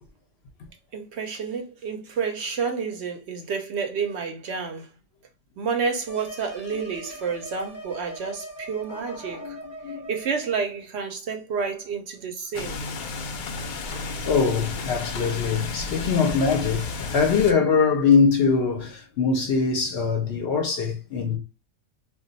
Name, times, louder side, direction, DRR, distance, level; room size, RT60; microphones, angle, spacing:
voice 1, 0.9-4.9 5.6-9.6 10.1-12.8, right 5 dB, 65° right, 0.7 m, -29 dB
sound 1, 6.1-10.5, right 1 dB, 20° left, 0.8 m, -41 dB
voice 2, 8.9-10.1 13.9-21.4, left 5 dB, 60° left, 0.7 m, -23 dB
sound 2, 12.5-17.5, left 3 dB, 85° left, 0.4 m, -32 dB
2.3 x 2.2 x 3.8 m
omnidirectional pair, 1.4 m